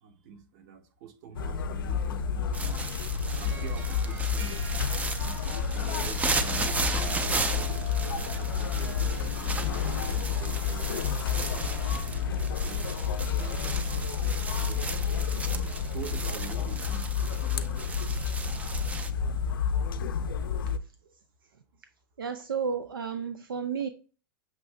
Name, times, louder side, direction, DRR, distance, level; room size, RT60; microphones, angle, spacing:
voice 1, 0.0-2.8 3.4-7.7 8.1-11.1 11.5-12.8 13.3-17.3 17.7-17.8 18.3-19.9, right 7 dB, 55° right, 0.9 m, -47 dB
sound 1, 1.3-20.8, left 6 dB, 80° left, 0.4 m, -30 dB
sound 2, 2.5-19.1, right 3 dB, 15° right, 0.4 m, -36 dB
Harp, 3.3-13.6, right 4 dB, 70° right, 1.1 m, -47 dB
voice 2, 22.2-23.9, right 6 dB, 90° right, 0.4 m, -32 dB
6.0 x 2.6 x 3.2 m
hypercardioid pair, 105°, 11 cm